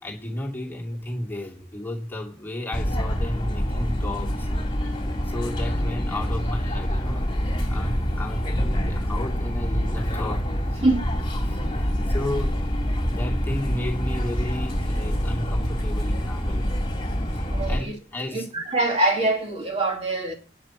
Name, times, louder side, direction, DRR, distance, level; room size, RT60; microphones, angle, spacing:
voice 1, 0.0-4.5 5.2-7.3 7.7-10.8 11.4-12.7 13.0-16.8 17.7-18.5, left 1 dB, 10° left, 2.3 m, -33 dB
sound 1, 2.7-17.8, equal, 25° left, 2.5 m, -26 dB
voice 2, 17.5-18.0 18.3-20.3, right 2 dB, 30° right, 2.6 m, -24 dB
10.0 x 7.1 x 5.8 m
head